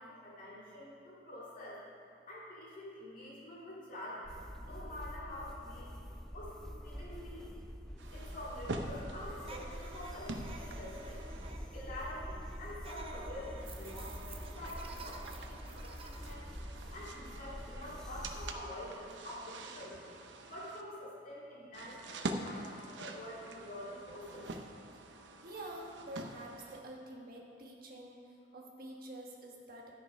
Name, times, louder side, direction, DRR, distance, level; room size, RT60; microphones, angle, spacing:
voice 1, 0.0-1.8 2.3-4.3 4.6-5.9 6.3-6.6 6.8-7.5 8.1-11.3 11.7-16.4 16.9-20.1 20.4-24.5, left 1 dB, 50° left, -7 dB, 2.5 m, -47 dB
sound 1, 4.2-18.5, equal, 5° left, 0.5 m, -46 dB
sound 2, 8.0-11.5 13.6-20.8 21.7-26.8, right 2 dB, 85° right, 0.7 m, -46 dB
sound 3, 9.5-16.3, right 3 dB, 30° right, 0.7 m, -51 dB
voice 2, 25.4-28.2 28.5-29.9, right 1 dB, 55° right, -1 dB, 1.5 m, -47 dB
12.0 x 6.7 x 5.3 m, 2.5 s
head